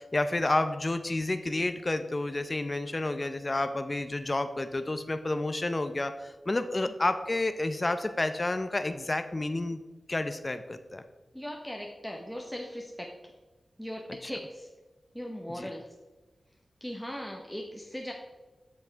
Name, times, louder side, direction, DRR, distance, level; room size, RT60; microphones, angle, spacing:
voice 1, 0.0-9.8 10.1-11.0 15.5-15.7, left 2 dB, 35° left, 9 dB, 0.6 m, -30 dB
voice 2, 11.3-13.1 13.8-14.7 15.1-15.9 16.8-18.1, equal, 5° left, 0 dB, 1.0 m, -38 dB
7.6 x 5.7 x 4.6 m, 1.1 s
cardioid pair, 55°, 0 cm